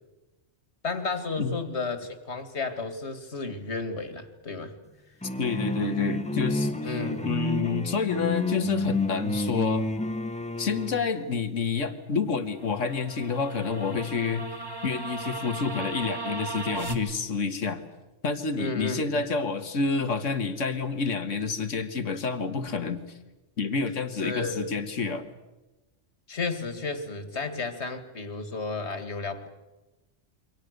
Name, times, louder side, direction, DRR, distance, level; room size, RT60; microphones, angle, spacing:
voice 1, 0.8-4.7 6.8-7.4 18.6-19.2 24.2-24.7 26.3-29.5, left 3 dB, 65° left, 9 dB, 2.5 m, -33 dB
sound 1, 5.2-11.1, left 1 dB, 5° left, 1.0 m, -30 dB
voice 2, 5.4-6.9 7.2-9.9 10.6-14.5 14.8-17.8 18.2-23.0 23.6-25.3, left 5 dB, 80° left, 9 dB, 2.0 m, -28 dB
sound 2, 12.5-17.0, right 2 dB, 20° right, 1.8 m, -36 dB
28.5 x 24.5 x 6.7 m, 1.1 s
omnidirectional pair, 1.3 m